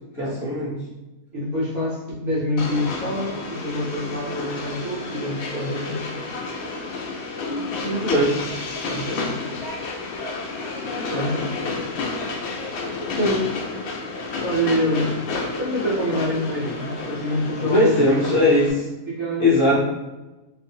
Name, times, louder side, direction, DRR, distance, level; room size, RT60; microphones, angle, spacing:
voice 1, 0.2-0.8 7.4-8.5 13.2-13.5 17.6-18.9 19.4-19.8, left 1 dB, 60° left, -6 dB, 0.9 m, -20 dB
voice 2, 1.3-6.1 8.7-9.4 10.9-11.4 14.4-15.1 15.6-18.3 19.1-19.8, equal, 60° right, -8 dB, 1.0 m, -26 dB
Train, 2.6-18.7, left 3 dB, 90° left, 0.5 m, -30 dB
2.6 x 2.4 x 2.7 m, 1.1 s
omnidirectional pair, 1.7 m